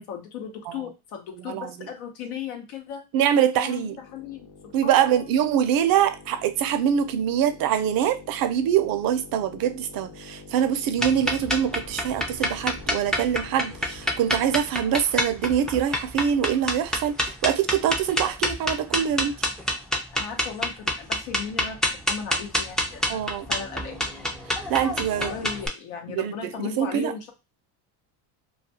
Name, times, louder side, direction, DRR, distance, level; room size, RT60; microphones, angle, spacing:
voice 1, 0.0-3.0 3.5-4.5 4.8-5.3 20.1-21.8 22.1-23.2 23.5-24.1 25.2-27.3, left 7 dB, 85° left, 0.8 m, -36 dB
voice 2, 1.5-1.9 3.1-4.0 4.7-19.3 23.1-23.5 24.7-25.3 26.1-26.3 26.6-27.1, right 9 dB, 50° right, 0.5 m, -24 dB
sound 1, 3.8-14.9, left 4 dB, 55° left, 0.9 m, -46 dB
sound 2, 11.0-25.7, left 1 dB, ahead, 0.3 m, -27 dB
2.4 x 2.3 x 2.7 m
supercardioid pair, 100°, 44 cm